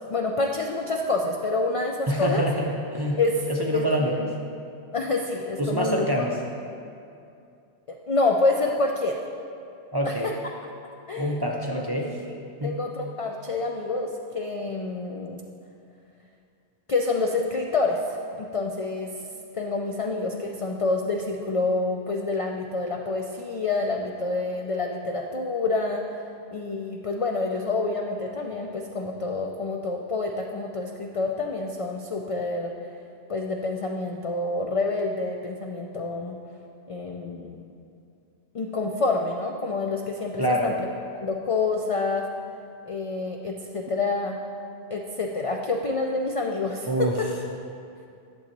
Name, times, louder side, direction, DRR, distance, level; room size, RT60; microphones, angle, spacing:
voice 1, 0.1-2.5 3.2-3.4 3.7-4.3 4.9-6.1 7.9-9.2 10.0-10.3 11.1-11.4 11.7-12.1 12.6-15.4 16.9-19.1 19.5-26.0 26.5-32.7 33.3-36.4 36.9-37.6 38.5-40.7 41.1-42.3 42.9-44.4 44.9-47.3, left 3 dB, 55° left, 1 dB, 0.3 m, -27 dB
voice 2, 2.1-3.2 3.5-4.3 5.6-6.4 9.9-10.3 11.2-12.2 12.6-12.7 40.4-40.7 46.9-47.2, equal, 30° right, -1 dB, 0.4 m, -26 dB
11.0 x 6.9 x 3.0 m, 2.5 s
omnidirectional pair, 1.1 m